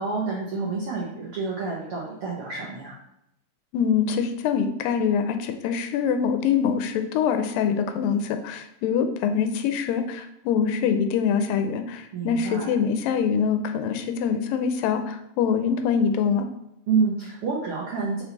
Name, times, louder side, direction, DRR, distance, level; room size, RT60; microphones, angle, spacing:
voice 1, 0.0-3.0 12.1-12.7 16.9-18.2, right 4 dB, 80° right, -4 dB, 1.2 m, -28 dB
voice 2, 3.7-16.5, left 7 dB, 90° left, 7 dB, 2.3 m, -24 dB
5.5 x 4.5 x 4.0 m, 0.81 s
omnidirectional pair, 3.9 m